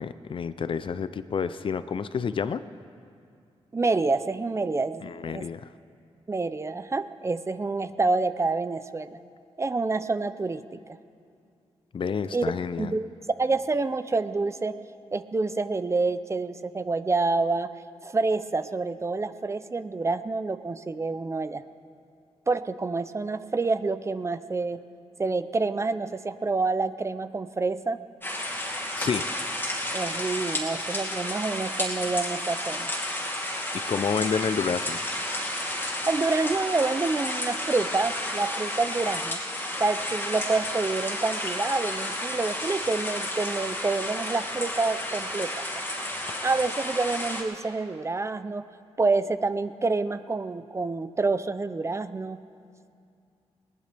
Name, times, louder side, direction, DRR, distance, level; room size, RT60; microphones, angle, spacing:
voice 1, 0.0-2.6 5.0-5.7 11.9-12.9 29.0-29.3 33.7-35.0, left 6 dB, 50° left, 13 dB, 0.5 m, -29 dB
voice 2, 3.7-5.5 6.3-9.2 9.6-11.0 12.3-12.4 12.8-13.1 13.4-14.7 15.1-17.7 18.0-21.6 22.5-24.8 25.2-28.0 29.9-32.9 36.1-39.4 39.8-45.6 46.4-48.6 49.0-52.4, right 3 dB, 25° right, 12 dB, 0.5 m, -27 dB
sound 1, 28.2-47.4, left 1 dB, 20° left, 2.3 m, -32 dB
20.5 x 19.0 x 3.4 m, 2.4 s
wide cardioid pair, 110°, 11 cm